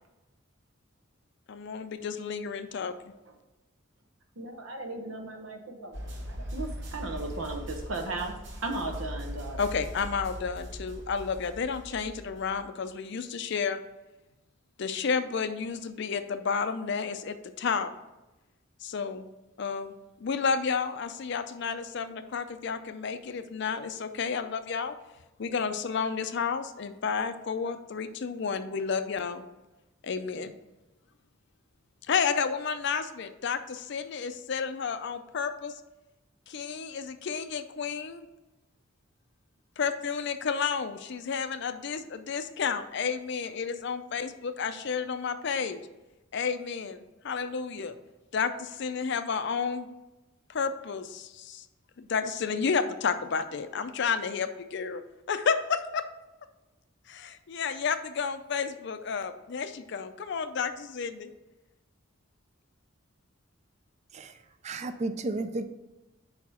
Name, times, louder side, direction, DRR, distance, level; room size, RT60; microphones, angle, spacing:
voice 1, 1.5-2.9 9.6-13.8 14.8-17.9 18.8-19.2 19.6-19.9 20.2-24.9 25.4-29.4 30.0-30.5 32.1-35.7 36.5-38.3 39.8-45.8 46.3-48.0 48.3-49.9 50.5-51.7 52.0-55.0 55.3-56.0 57.1-61.3, left 5 dB, 60° left, 10 dB, 0.5 m, -31 dB
voice 2, 4.4-9.7, right 2 dB, 90° right, 4 dB, 1.0 m, -36 dB
sound 1, 5.9-12.6, equal, 60° right, 1.1 m, -40 dB
voice 3, 64.6-65.7, right 2 dB, 35° right, 9 dB, 0.4 m, -33 dB
5.1 x 4.7 x 5.5 m, 1.0 s
head